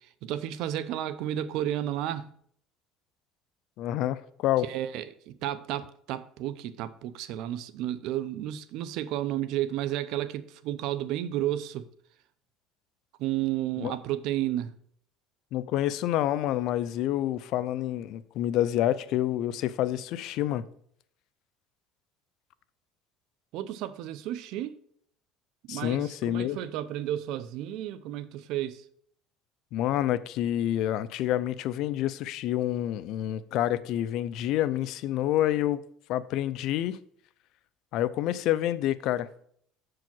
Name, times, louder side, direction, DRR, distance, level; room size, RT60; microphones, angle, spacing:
voice 1, 0.2-2.3 4.6-11.8 13.2-14.7 23.5-24.8 25.7-28.8, right 12 dB, 65° right, 0.5 m, -32 dB
voice 2, 3.8-4.7 13.8-14.0 15.5-20.6 25.7-26.6 29.7-35.8 36.1-37.0 37.9-39.3, left 13 dB, 60° left, 0.4 m, -28 dB
7.0 x 4.8 x 6.0 m
cardioid pair, 130°, 0 cm